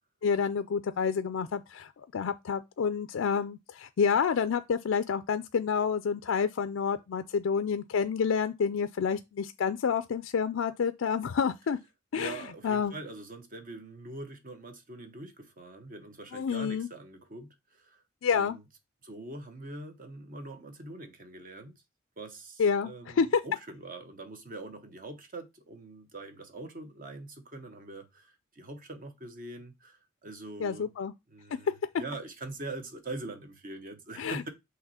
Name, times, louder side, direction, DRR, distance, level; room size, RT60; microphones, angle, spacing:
voice 1, 0.2-11.8 12.1-12.9 16.3-16.9 18.2-18.6 22.6-23.4 30.6-31.1 34.2-34.4, left 6 dB, 75° left, 0.4 m, -29 dB
voice 2, 12.1-18.0 18.3-18.6 19.0-21.8 22.2-30.9 31.3-34.5, right 2 dB, 45° right, 1.0 m, -43 dB
5.8 x 3.1 x 5.5 m
head